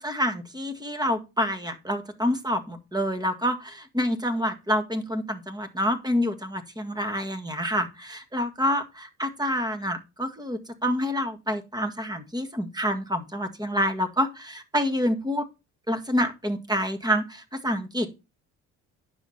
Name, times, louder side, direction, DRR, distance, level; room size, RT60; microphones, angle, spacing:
voice 1, 0.0-15.5 15.9-18.1, equal, 10° right, 8 dB, 1.9 m, -27 dB
9.7 x 6.3 x 4.3 m, 0.27 s
supercardioid pair, 65°, 36 cm